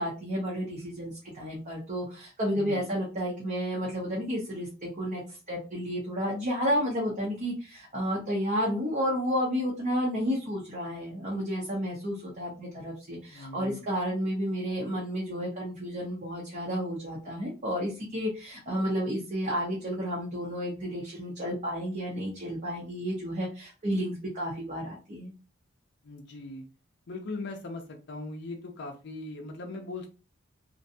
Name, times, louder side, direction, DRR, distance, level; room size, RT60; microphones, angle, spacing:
voice 1, 0.0-5.2 5.5-25.3, equal, 40° right, -3 dB, 0.6 m, -31 dB
voice 2, 2.6-2.9 13.3-13.9 26.0-26.6 27.1-30.1, left 2 dB, 55° left, 1 dB, 0.5 m, -39 dB
2.5 x 2.2 x 2.6 m, 0.33 s
head